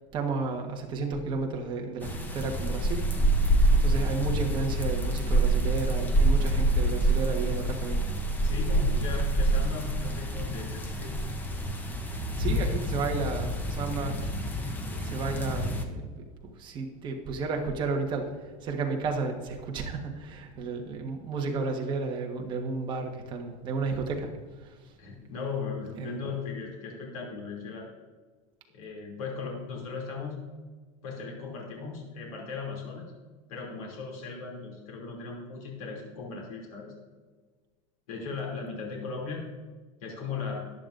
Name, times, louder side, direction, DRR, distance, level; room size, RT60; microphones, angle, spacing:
voice 1, 0.1-3.1 3.8-8.0 12.4-14.2 14.8-16.2 16.6-18.3 18.6-24.3 26.0-26.1, right 4 dB, 25° right, 2 dB, 1.4 m, -32 dB
sound 1, 2.0-15.8, right 1 dB, 10° left, 0.7 m, -27 dB
voice 2, 8.4-11.2 25.0-27.9 28.7-30.4 31.0-33.1 33.5-36.9 38.1-39.4 40.0-40.6, left 4 dB, 90° left, -1 dB, 2.8 m, -37 dB
14.0 x 10.5 x 2.6 m, 1.4 s
supercardioid pair, 165°, 17 cm